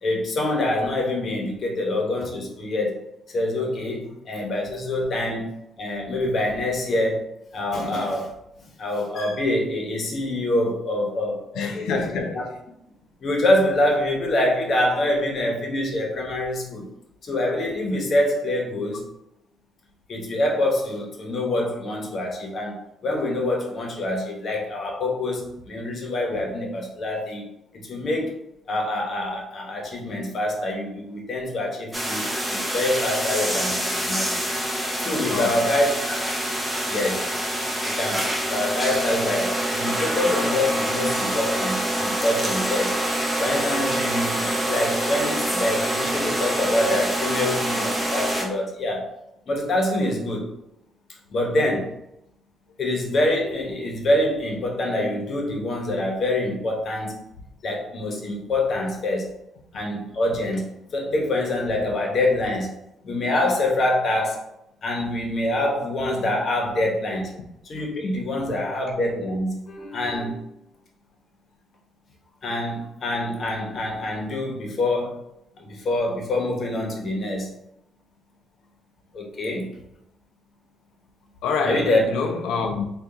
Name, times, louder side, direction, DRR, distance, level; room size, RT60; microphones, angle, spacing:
voice 1, 0.0-3.0 3.3-7.3 7.5-8.3 8.6-12.4 13.2-16.9 17.2-19.1 20.1-27.4 27.7-28.4 28.7-34.4 35.0-36.4 36.9-37.3 37.8-43.0 43.4-49.1 49.5-50.5 51.3-51.9 52.8-57.2 57.6-59.3 59.7-62.7 63.0-64.4 64.8-67.3 67.6-70.5 72.4-75.2 75.6-77.5 79.1-79.7 81.6-82.0, left 1 dB, 50° left, 1.0 m, -25 dB
voice 2, 11.5-12.4 35.3-35.6 81.4-82.8, left 5 dB, 85° left, 0.6 m, -27 dB
sound 1, 31.9-48.4, right 1 dB, 5° right, 0.8 m, -26 dB
3.5 x 2.5 x 3.8 m
cardioid pair, 90°, 0 cm